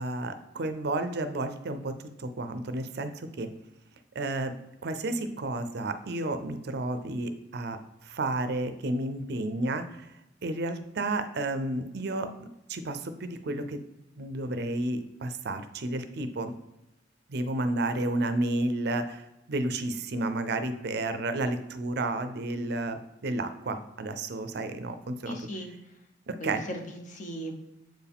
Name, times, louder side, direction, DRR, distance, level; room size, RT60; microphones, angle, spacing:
voice 1, 0.0-1.9 2.2-3.5 4.1-4.5 4.8-10.1 10.4-13.8 14.2-16.5 17.3-25.4 26.3-26.6, right 2 dB, 60° right, 9 dB, 0.5 m, -31 dB
voice 2, 25.3-25.7 26.4-27.6, right 1 dB, 45° left, 3 dB, 0.9 m, -38 dB
7.6 x 4.6 x 3.5 m, 0.91 s
head